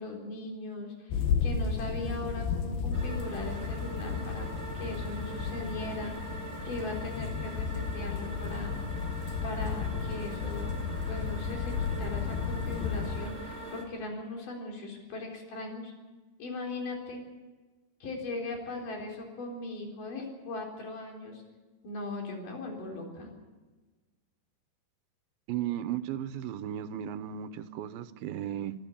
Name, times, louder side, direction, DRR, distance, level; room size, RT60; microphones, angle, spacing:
voice 1, 0.0-4.5 4.7-8.8 9.4-10.8 11.1-15.9 16.4-17.2 18.0-21.4 21.8-23.3, left 2 dB, 60° left, 1 dB, 5.5 m, -39 dB
sound 1, 1.1-13.3, left 6 dB, 85° left, 3.2 m, -33 dB
sound 2, 2.9-13.8, right 2 dB, 20° right, 4.4 m, -42 dB
voice 2, 25.5-28.7, right 11 dB, 85° right, 13 dB, 2.7 m, -35 dB
23.5 x 13.0 x 8.6 m, 1.3 s
omnidirectional pair, 4.2 m